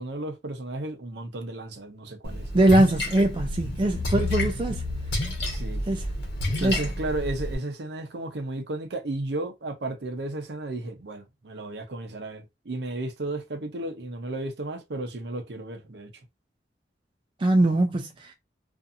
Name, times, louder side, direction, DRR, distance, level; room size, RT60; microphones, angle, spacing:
voice 1, 0.0-2.5 5.5-5.8 6.5-16.1, right 2 dB, 70° right, 0.6 m, -34 dB
Splash splatter, 2.2-7.5, left 1 dB, 70° left, 1.0 m, -30 dB
voice 2, 2.5-4.8 5.9-6.1 6.6-6.8 17.4-18.3, right 1 dB, 30° right, 0.3 m, -22 dB
2.6 x 2.5 x 2.5 m
head